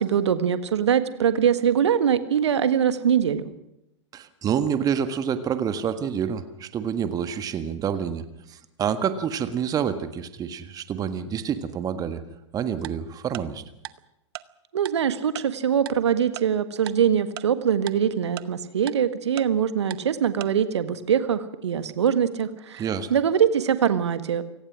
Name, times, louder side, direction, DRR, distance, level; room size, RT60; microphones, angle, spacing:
voice 1, 0.0-3.4 14.7-24.4, right 8 dB, 65° right, 11 dB, 1.6 m, -23 dB
voice 2, 4.1-8.2 8.5-12.2 12.5-13.6 22.8-23.1, right 8 dB, 25° right, 10 dB, 1.6 m, -27 dB
Tick-tock, 12.8-12.9 13.3-13.4 13.8-13.9 14.3-14.4 14.9-15.0 15.4-15.5 15.9-16.0 16.4-16.5 16.9-17.0 17.4-17.5 17.9-18.0 18.4-18.5 18.9-19.0 19.4-19.5 19.9-20.0 20.4-20.5, right 17 dB, 50° right, 0.9 m, -35 dB
28.5 x 18.0 x 6.2 m, 0.87 s
figure-of-eight pair, 100°, 16 cm